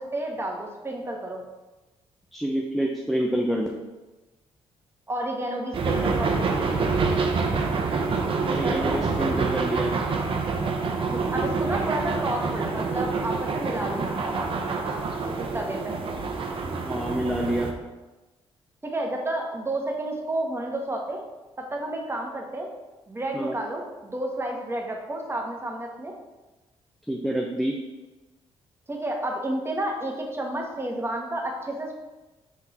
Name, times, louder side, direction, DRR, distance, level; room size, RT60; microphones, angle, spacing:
voice 1, 0.0-1.4 5.1-6.5 8.6-9.0 11.1-14.5 15.4-16.0 18.8-21.2 21.7-22.7 23.1-26.1 28.9-32.0, right 1 dB, 20° right, 1 dB, 1.2 m, -31 dB
voice 2, 2.3-3.7 8.4-9.9 16.7-17.7 23.3-23.6 27.1-27.7, right 1 dB, ahead, 0 dB, 0.7 m, -27 dB
sound 1, 5.7-17.7, right 4 dB, 50° right, 0.8 m, -27 dB
6.3 x 3.7 x 4.1 m, 1.1 s
cardioid pair, 70°, 11 cm